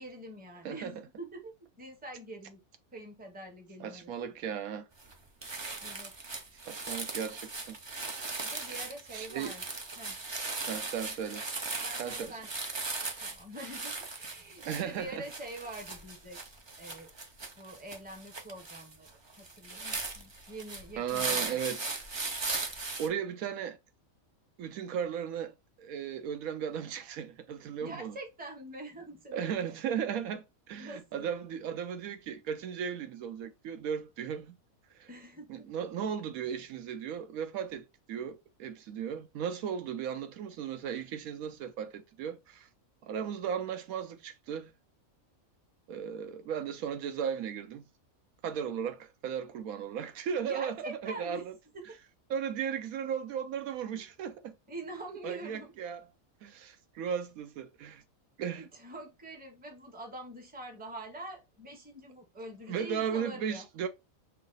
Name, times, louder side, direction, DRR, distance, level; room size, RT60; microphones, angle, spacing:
voice 1, 0.0-2.6 2.9-4.1 5.8-6.1 6.5-6.7 8.4-9.6 10.0-10.2 11.8-12.5 13.2-16.4 16.8-17.1 17.6-19.1 19.4-21.6 27.8-29.8 30.7-31.3 35.1-35.7 50.4-51.5 51.7-52.0 54.7-55.7 58.5-63.7, right 1 dB, 10° right, 0.7 m, -45 dB
voice 2, 3.8-4.9 6.7-7.8 9.1-9.5 10.7-11.4 12.0-12.4 14.6-15.2 21.0-22.0 22.7-23.8 24.6-28.1 29.3-34.6 34.9-35.1 35.5-42.7 43.0-44.7 45.9-47.8 48.4-51.5 52.3-54.5 55.2-56.0 56.4-58.0 58.4-58.6 62.7-63.9, right 8 dB, 80° right, 1.1 m, -36 dB
sound 1, 5.0-5.1 5.4-23.1, right 3 dB, 45° right, 0.3 m, -38 dB
5.6 x 2.1 x 3.9 m
omnidirectional pair, 1.5 m